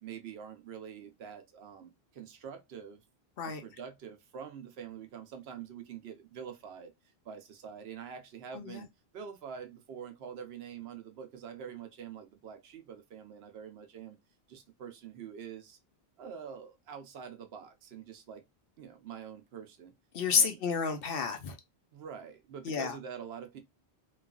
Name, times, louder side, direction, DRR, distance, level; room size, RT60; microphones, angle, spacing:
voice 1, 0.0-3.0 3.4-6.9 7.2-8.9 9.1-14.2 14.5-15.8 16.2-18.4 18.8-19.9 20.3-20.6 21.9-23.6, right 7 dB, 80° right, 0.9 m, -45 dB
voice 2, 8.5-8.8 20.1-21.6 22.6-23.0, left 6 dB, 65° left, 0.8 m, -30 dB
3.1 x 2.3 x 2.3 m
omnidirectional pair, 1.1 m